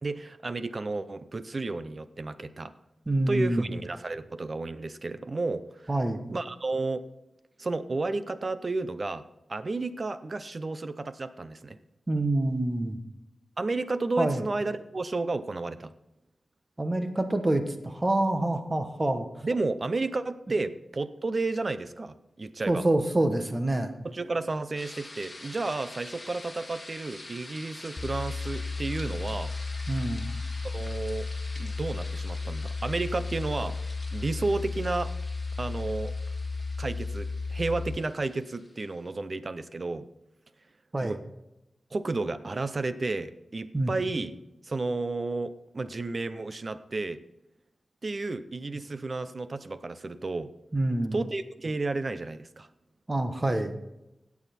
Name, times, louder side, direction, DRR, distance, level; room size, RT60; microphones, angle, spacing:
voice 1, 0.0-2.7 3.3-5.9 6.3-7.0 7.6-9.2 9.5-11.8 13.6-15.9 19.4-22.8 24.0-29.5 30.6-31.3 31.6-33.8 34.1-35.1 35.6-36.1 36.8-40.1 41.0-41.2 41.9-44.4 44.6-47.2 48.0-50.5 51.1-52.7, right 3 dB, 40° right, 12 dB, 0.6 m, -32 dB
voice 2, 3.1-3.7 5.9-6.3 12.1-13.0 14.2-14.4 16.8-19.3 22.7-23.9 29.9-30.3 40.9-41.2 43.7-43.9 50.7-51.2 53.1-53.8, right 1 dB, 25° right, 7 dB, 1.1 m, -26 dB
sound 1, 24.8-38.8, left 2 dB, 20° left, 1.8 m, -46 dB
sound 2, 28.0-38.0, left 3 dB, 35° left, 0.6 m, -34 dB
17.0 x 7.2 x 4.3 m, 0.90 s
wide cardioid pair, 130°, 0 cm